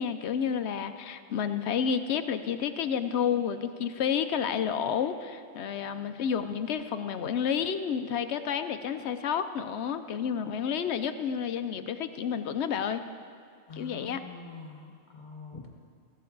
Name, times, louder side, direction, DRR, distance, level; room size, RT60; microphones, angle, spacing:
voice 1, 0.0-13.0 13.8-14.2, left 7 dB, 65° left, 10 dB, 0.8 m, -30 dB
voice 2, 13.7-15.7, left 4 dB, 40° left, 1 dB, 1.4 m, -45 dB
15.5 x 13.5 x 3.9 m, 2.3 s
omnidirectional pair, 1.3 m